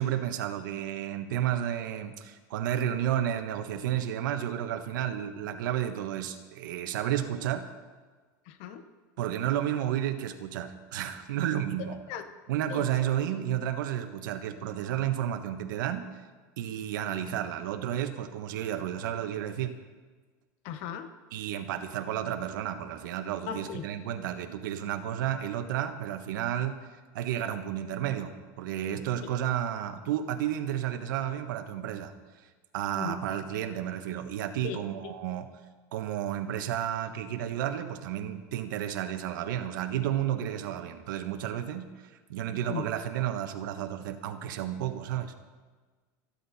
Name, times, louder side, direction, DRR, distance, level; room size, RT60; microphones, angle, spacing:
voice 1, 0.0-7.7 9.2-12.0 12.5-16.1 16.6-19.8 21.3-26.8 27.1-32.1 32.7-35.5 35.9-45.3, right 11 dB, 85° right, 7 dB, 1.4 m, -32 dB
voice 2, 8.4-8.8 11.8-12.2 12.7-12.9 20.6-21.1 23.5-23.8 32.9-33.2 34.6-35.1 42.7-42.9, left 8 dB, 60° left, 8 dB, 1.3 m, -37 dB
26.5 x 10.0 x 4.3 m, 1.4 s
supercardioid pair, 130°, 10 cm